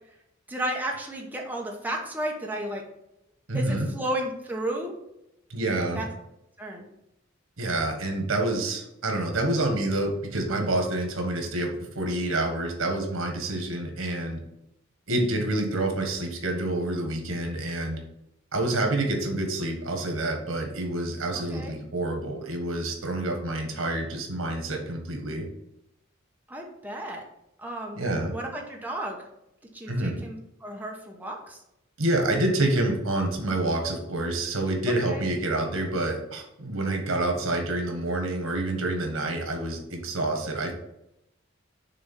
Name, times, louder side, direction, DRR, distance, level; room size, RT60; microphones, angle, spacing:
voice 1, 0.5-2.8 3.5-4.9 5.9-6.1 6.6-6.8 21.5-21.8 26.5-27.2 27.6-29.2 29.7-31.6 35.0-35.2, right 1 dB, 10° right, 0 dB, 1.0 m, -33 dB
voice 2, 3.5-3.9 5.5-6.0 7.6-11.7 11.9-14.4 15.1-18.0 18.5-25.4 27.9-28.3 29.9-30.2 32.0-40.7, right 2 dB, 90° right, 3 dB, 1.5 m, -27 dB
6.7 x 3.5 x 5.4 m, 0.84 s
head